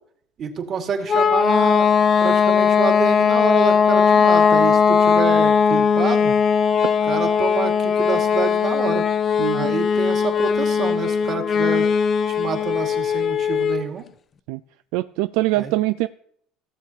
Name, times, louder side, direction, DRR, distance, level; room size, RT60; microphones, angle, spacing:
voice 1, 0.4-1.9 2.2-6.3 7.0-9.1 9.5-11.9 12.3-14.0 15.5-15.7, right 6 dB, 45° right, 5 dB, 1.9 m, -27 dB
sound 1, 1.1-13.9, left 6 dB, 40° left, 0.6 m, -18 dB
voice 2, 9.4-9.7 14.5-14.6 14.9-16.1, right 18 dB, 80° right, 12 dB, 0.3 m, -23 dB
16.5 x 7.3 x 2.8 m, 0.65 s
supercardioid pair, 90°, 0 cm